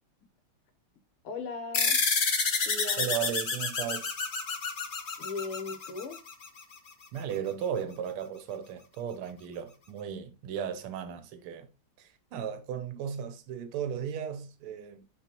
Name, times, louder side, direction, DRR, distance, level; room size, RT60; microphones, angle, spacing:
voice 1, 1.2-2.0 2.7-3.1 5.2-6.2, left 3 dB, 90° left, 2.2 m, -37 dB
sound 1, 1.7-6.6, left 4 dB, 50° left, 0.6 m, -29 dB
voice 2, 3.0-4.1 7.1-11.7 12.0-15.2, right 8 dB, 85° right, 1.8 m, -36 dB
8.7 x 4.5 x 2.9 m
omnidirectional pair, 2.4 m